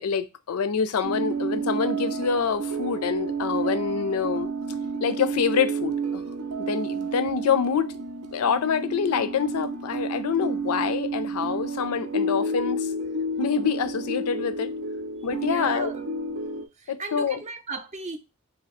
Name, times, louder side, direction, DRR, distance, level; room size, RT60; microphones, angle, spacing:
voice 1, 0.0-4.5 5.0-6.2 6.6-7.9 8.3-12.9 13.4-14.7 15.2-15.9 16.9-17.4, left 6 dB, 80° left, 0.4 m, -26 dB
sound 1, 1.0-16.7, right 3 dB, 85° right, 0.5 m, -30 dB
voice 2, 15.4-16.0 16.8-18.2, right 3 dB, 30° right, 0.5 m, -36 dB
2.7 x 2.7 x 4.1 m
head